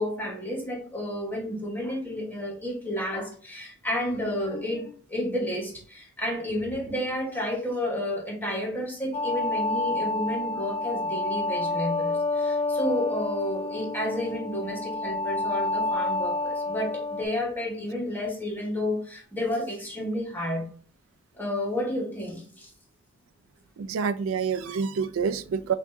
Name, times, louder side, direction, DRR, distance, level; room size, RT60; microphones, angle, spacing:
voice 1, 0.0-20.6 21.4-22.7, left 1 dB, 10° left, 1.3 m, -31 dB
sound 1, 9.1-17.2, left 2 dB, 30° left, 0.3 m, -29 dB
voice 2, 23.8-25.7, right 6 dB, 80° right, 0.4 m, -27 dB
6.0 x 2.7 x 2.6 m
head